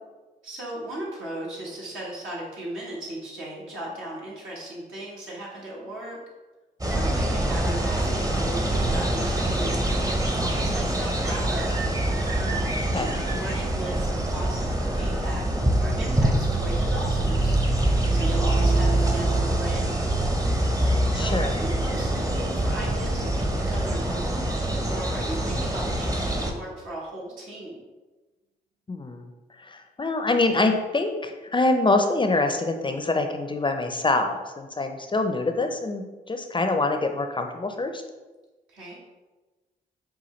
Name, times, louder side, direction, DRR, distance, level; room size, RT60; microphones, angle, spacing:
voice 1, 0.4-6.2 6.9-10.1 10.4-11.7 12.9-17.6 18.1-20.0 21.1-24.5 24.9-27.8 38.7-39.0, right 1 dB, 80° right, -5 dB, 1.3 m, -37 dB
sound 1, 6.8-26.5, right 1 dB, 15° right, 0.7 m, -24 dB
sound 2, 18.0-20.7, right 6 dB, 60° right, 0.8 m, -35 dB
voice 2, 21.1-21.6 28.9-29.3 29.6-38.0, left 2 dB, 25° left, 5 dB, 0.5 m, -25 dB
5.6 x 2.3 x 3.1 m, 1.2 s
supercardioid pair, 45°, 20 cm